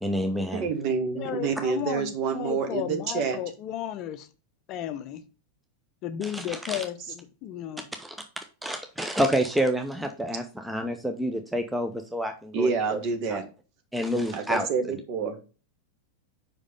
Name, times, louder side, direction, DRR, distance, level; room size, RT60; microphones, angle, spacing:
voice 1, 0.0-0.7 6.2-6.8 8.0-8.2 8.6-13.0 13.3-13.4 13.9-14.7, equal, 5° right, 6 dB, 0.8 m, -28 dB
voice 2, 0.5-3.4 12.5-13.5 14.3-15.5, right 5 dB, 40° right, 6 dB, 1.6 m, -28 dB
voice 3, 1.1-4.3 4.7-5.2 6.0-7.9, left 11 dB, 40° left, 10 dB, 0.6 m, -34 dB
5.3 x 5.0 x 5.3 m, 0.34 s
figure-of-eight pair, 90°, 0 cm